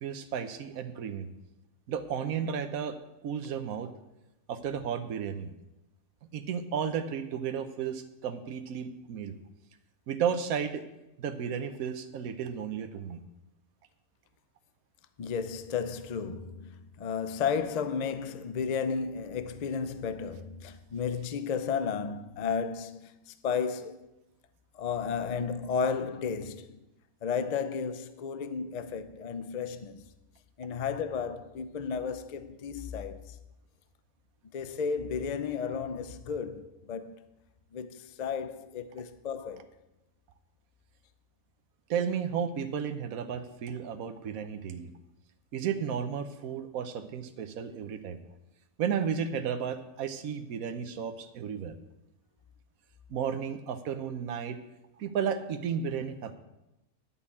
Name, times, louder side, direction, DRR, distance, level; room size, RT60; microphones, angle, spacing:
voice 1, 0.0-1.3 1.9-3.0 3.2-3.9 4.5-5.5 6.3-9.3 10.1-10.8 11.2-13.2 41.9-44.9 45.5-48.2 48.8-51.7 53.1-54.6 55.0-56.4, right 7 dB, 75° right, 1.3 m, -33 dB
voice 2, 15.2-16.7 17.0-23.1 23.4-24.0 24.8-26.8 27.2-30.0 30.6-33.2 34.5-37.2 37.7-39.7, left 6 dB, 50° left, 0.5 m, -33 dB
11.0 x 5.7 x 8.4 m
omnidirectional pair, 1.5 m